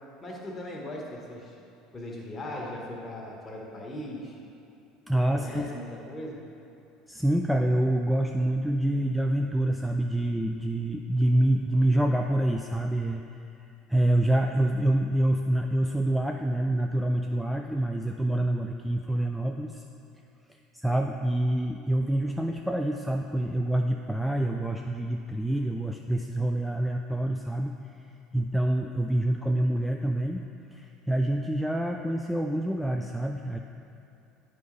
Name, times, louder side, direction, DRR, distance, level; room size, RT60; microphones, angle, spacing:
voice 1, 0.2-1.5 1.9-4.3 5.3-6.4, left 1 dB, 25° left, -2 dB, 1.6 m, -38 dB
voice 2, 5.1-5.7 7.1-13.2 13.9-19.8 20.7-27.7 28.3-30.4 30.7-33.6, right 1 dB, 5° right, 3 dB, 0.4 m, -26 dB
9.3 x 5.1 x 3.3 m, 2.8 s
hypercardioid pair, 70°, 0 cm